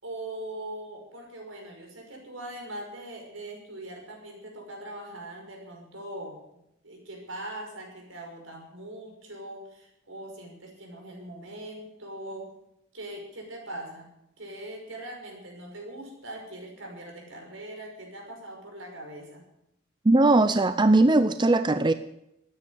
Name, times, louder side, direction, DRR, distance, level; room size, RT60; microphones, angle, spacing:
voice 1, 0.0-6.4 6.8-12.5 12.9-19.4, right 1 dB, 85° right, 1 dB, 5.7 m, -41 dB
voice 2, 20.0-21.9, right 2 dB, 25° right, 11 dB, 0.5 m, -20 dB
14.0 x 9.9 x 9.7 m, 0.83 s
head